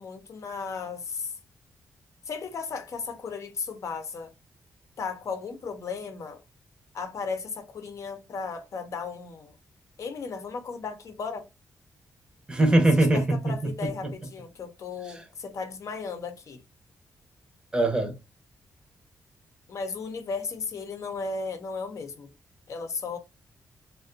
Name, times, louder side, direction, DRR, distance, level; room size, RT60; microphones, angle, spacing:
voice 1, 0.0-1.3 2.3-4.3 5.0-6.4 6.9-9.5 10.0-11.5 13.0-16.6 19.7-22.3 22.7-23.2, left 5 dB, 60° left, 0.7 m, -35 dB
voice 2, 12.5-13.5 17.7-18.1, right 2 dB, 15° right, 0.7 m, -21 dB
2.4 x 2.2 x 2.5 m
cardioid pair, 115°, 6 cm